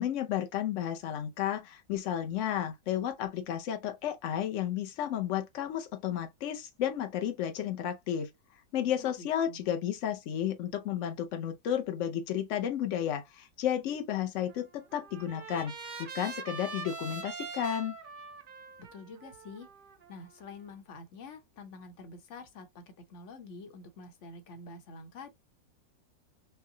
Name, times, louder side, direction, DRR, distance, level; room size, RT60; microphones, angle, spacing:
voice 1, 0.0-8.3 8.7-15.7 16.0-18.0, left 10 dB, 85° left, 0.6 m, -32 dB
voice 2, 9.0-9.6 18.8-19.7 20.1-25.3, left 3 dB, 50° left, 1.0 m, -47 dB
Trumpet, 14.5-20.7, right 4 dB, 80° right, 0.4 m, -44 dB
5.5 x 2.2 x 2.6 m
omnidirectional pair, 2.0 m